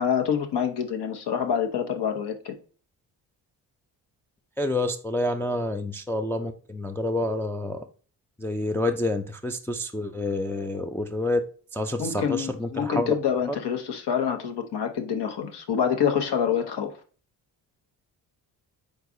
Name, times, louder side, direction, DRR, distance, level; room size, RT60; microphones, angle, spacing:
voice 1, 0.0-2.5 12.0-16.9, left 8 dB, 55° left, 5 dB, 1.1 m, -26 dB
voice 2, 4.6-7.8 8.4-11.4 11.7-13.1 13.5-13.6, left 1 dB, 5° left, 4 dB, 0.4 m, -28 dB
4.5 x 3.8 x 2.6 m, 0.40 s
supercardioid pair, 50°, 48 cm